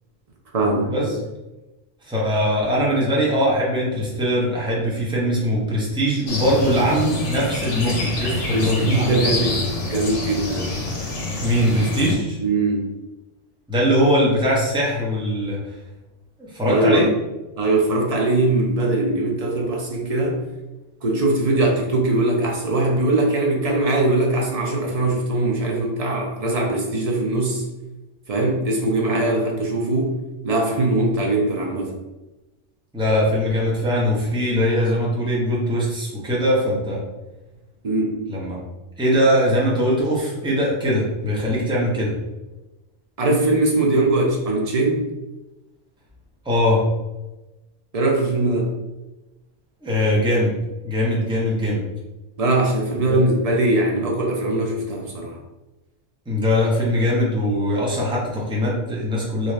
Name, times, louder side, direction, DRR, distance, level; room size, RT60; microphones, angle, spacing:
voice 1, 0.5-1.1 8.5-10.7 12.4-12.9 16.6-17.0 17.6-20.5 21.0-27.6 28.3-30.2 30.4-31.9 37.8-38.2 43.2-45.0 47.9-48.7 52.4-55.4, right 2 dB, 45° right, -1 dB, 0.5 m, -21 dB
voice 2, 2.0-9.6 11.4-12.4 13.7-15.7 16.4-17.1 32.9-37.0 38.3-38.6 39.0-42.1 46.4-46.8 49.8-50.6 50.8-51.8 53.1-53.2 56.3-59.5, equal, 5° right, -5 dB, 0.6 m, -21 dB
sound 1, 6.3-12.2, left 2 dB, 70° left, 1.1 m, -27 dB
3.2 x 2.7 x 3.1 m, 1.0 s
omnidirectional pair, 1.3 m